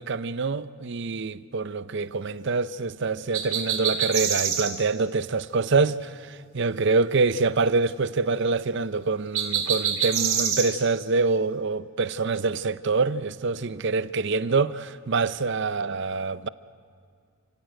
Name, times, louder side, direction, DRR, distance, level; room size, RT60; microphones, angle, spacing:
voice 1, 0.0-16.5, right 4 dB, 50° right, 0.6 m, -25 dB
sound 1, 3.3-4.7 9.3-10.7, right 8 dB, 75° right, 4.1 m, -25 dB
28.5 x 16.5 x 9.1 m
head